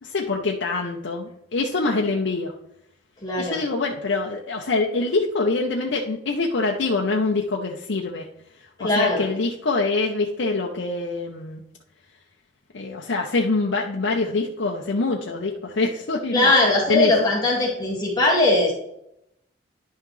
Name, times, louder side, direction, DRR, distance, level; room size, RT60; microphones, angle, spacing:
voice 1, 0.0-2.5 3.4-8.3 8.8-11.6 12.7-16.5 16.9-17.1, left 3 dB, 70° left, 0 dB, 0.7 m, -25 dB
voice 2, 3.2-3.6 8.8-9.3 16.3-18.7, left 2 dB, 20° left, -4 dB, 2.0 m, -20 dB
10.5 x 5.6 x 3.2 m, 0.79 s
head